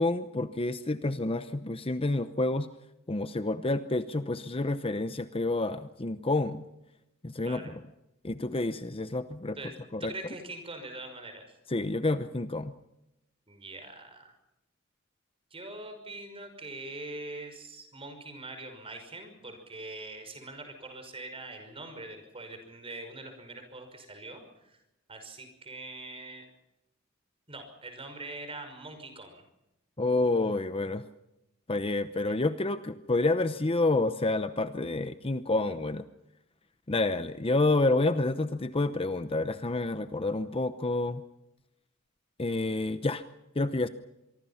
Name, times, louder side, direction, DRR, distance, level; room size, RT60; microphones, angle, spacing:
voice 1, 0.0-2.7 3.1-6.6 7.2-7.6 8.2-9.6 9.9-10.1 11.7-12.7 30.0-31.0 31.7-36.0 36.9-41.2 42.4-43.2 43.6-43.9, left 2 dB, 25° left, 11 dB, 0.8 m, -29 dB
voice 2, 10.0-11.6 13.5-14.3 15.5-24.8 25.1-26.5 27.5-29.4 32.3-32.4, right 2 dB, 25° right, 7 dB, 5.7 m, -43 dB
25.0 x 24.0 x 5.8 m, 0.90 s
head